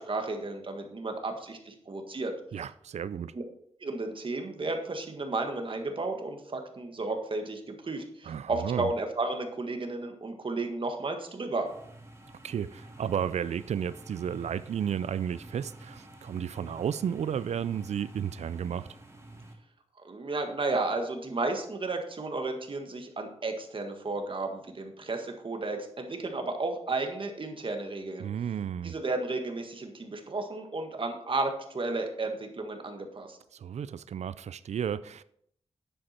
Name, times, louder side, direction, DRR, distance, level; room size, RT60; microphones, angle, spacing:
voice 1, 0.0-2.3 3.3-3.4 3.8-11.7 20.0-28.3 28.8-33.4, right 3 dB, 50° right, 1.7 m, -33 dB
voice 2, 2.5-3.3 8.2-8.9 12.4-18.9 28.2-28.9 33.5-35.2, right 8 dB, 85° right, 0.4 m, -33 dB
sound 1, 11.7-19.5, right 1 dB, 25° right, 1.7 m, -49 dB
10.0 x 7.8 x 4.4 m
wide cardioid pair, 95°, 11 cm